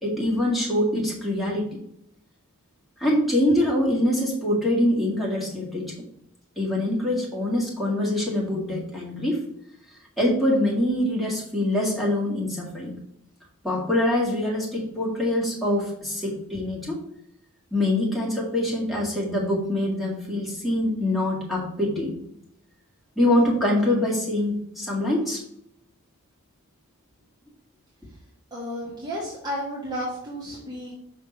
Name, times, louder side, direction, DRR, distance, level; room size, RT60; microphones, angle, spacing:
voice 1, 0.0-1.7 3.0-5.9 6.6-9.4 10.2-12.9 13.6-17.0 17.7-22.1 23.2-25.4, left 1 dB, ahead, -4 dB, 1.9 m, -24 dB
voice 2, 28.5-30.9, equal, 20° right, -6 dB, 1.6 m, -32 dB
5.8 x 3.6 x 5.9 m, 0.72 s
head